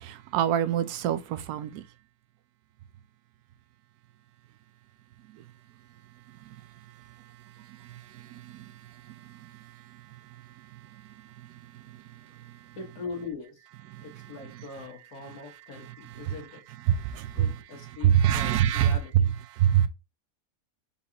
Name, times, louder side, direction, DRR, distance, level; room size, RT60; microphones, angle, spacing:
voice 1, 0.0-1.8 5.3-5.4 6.3-6.6 7.1-7.2 7.4-12.8 13.9-14.3 15.8-16.4 16.9-19.9, right 10 dB, 90° right, 1.1 m, -28 dB
voice 2, 12.8-13.6 14.0-16.6 17.1-19.3, left 4 dB, 85° left, 1.8 m, -41 dB
4.2 x 3.9 x 2.8 m
omnidirectional pair, 1.6 m